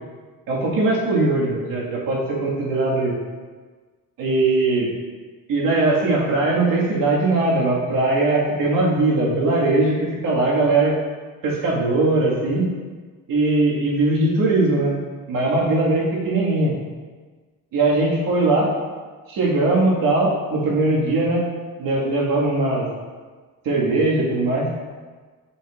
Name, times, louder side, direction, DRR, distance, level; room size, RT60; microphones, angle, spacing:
voice 1, 0.5-3.1 4.2-4.9 5.5-10.9 11.4-12.7 13.3-14.9 15.3-16.7 17.7-18.7 19.3-21.4 21.8-22.9 23.6-24.7, right 2 dB, 70° right, -4 dB, 1.7 m, -20 dB
7.7 x 5.2 x 2.4 m, 1.4 s
cardioid pair, 165°, 35 cm